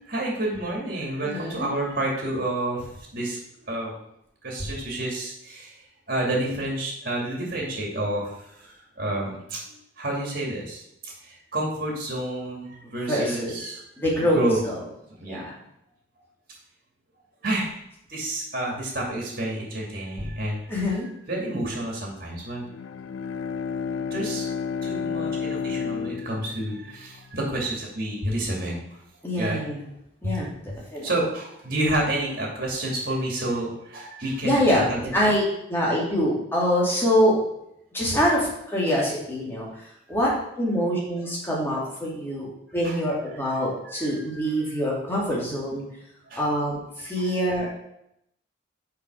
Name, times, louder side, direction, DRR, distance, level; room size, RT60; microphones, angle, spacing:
voice 1, 0.1-3.4 3.7-4.0 4.4-5.7 6.1-13.8 14.2-14.6 15.1-15.5 17.4-17.7 18.1-20.6 21.3-22.6 24.0-24.5 24.8-28.8 29.4-29.6 30.2-30.3 31.0-35.3 42.8-43.0 43.8-44.7 46.3-46.5 47.2-47.3, right 1 dB, 45° right, -2 dB, 2.6 m, -29 dB
voice 2, 1.2-1.7 13.1-13.5 14.0-14.4 14.7-14.8 15.3-15.5 20.7-21.1 29.2-29.9 30.2-30.5 30.9-31.1 34.4-34.9 35.1-35.4 35.7-37.4 37.9-39.7 40.1-40.3 40.6-42.5 42.7-45.8 46.4-47.7, equal, 10° left, -5 dB, 2.4 m, -24 dB
Bowed string instrument, 22.6-27.4, left 6 dB, 80° left, 0.4 m, -31 dB
6.1 x 5.3 x 6.3 m, 0.79 s
head